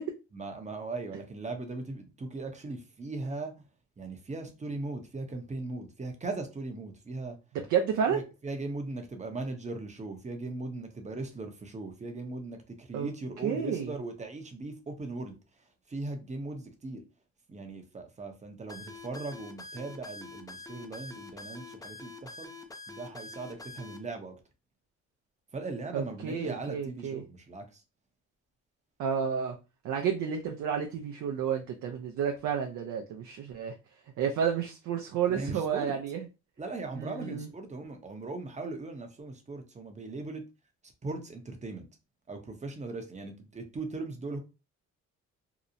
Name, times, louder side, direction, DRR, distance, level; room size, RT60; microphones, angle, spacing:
voice 1, 0.3-3.6 4.0-7.4 8.1-17.0 17.5-22.5 22.9-24.4 25.5-27.8 35.3-35.9 36.6-40.4 41.0-41.9 42.3-44.4, right 3 dB, 25° right, 0.6 m, -39 dB
voice 2, 7.7-8.2 12.9-13.1 13.4-13.9 25.9-27.2 29.0-29.6 29.8-33.7 34.2-36.2 37.0-37.5, right 7 dB, 65° right, 0.5 m, -31 dB
sound 1, 18.7-24.0, left 3 dB, 10° left, 0.4 m, -45 dB
2.8 x 2.0 x 2.5 m
cardioid pair, 90°, 30 cm